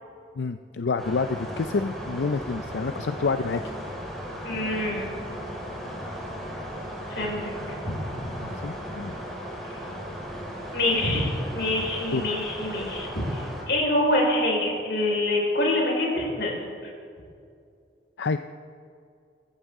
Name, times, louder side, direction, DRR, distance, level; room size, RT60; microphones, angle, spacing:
voice 1, 0.4-3.6 8.4-9.1 12.1-12.3 18.2-18.4, left 4 dB, 90° left, 9 dB, 0.5 m, -28 dB
sound 1, 1.0-13.6, equal, ahead, 3.5 m, -36 dB
voice 2, 4.4-5.1 7.1-7.5 7.8-8.0 10.7-16.5, left 1 dB, 75° left, -2 dB, 4.7 m, -25 dB
22.5 x 14.5 x 3.7 m, 2.4 s
head